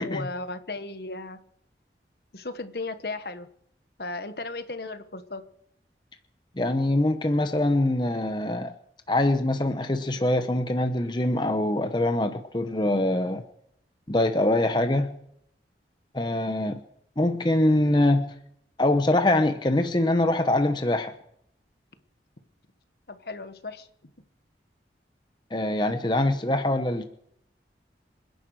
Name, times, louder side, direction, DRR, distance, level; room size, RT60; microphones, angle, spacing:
voice 1, 0.0-1.4 2.3-3.5 4.0-5.4 23.1-23.9, left 3 dB, 60° left, 10 dB, 1.2 m, -35 dB
voice 2, 6.6-8.7 9.1-13.4 14.1-15.2 16.1-16.8 17.2-18.3 18.8-21.1 25.5-27.0, left 1 dB, 25° left, 8 dB, 0.9 m, -24 dB
27.0 x 10.5 x 4.7 m, 0.72 s
head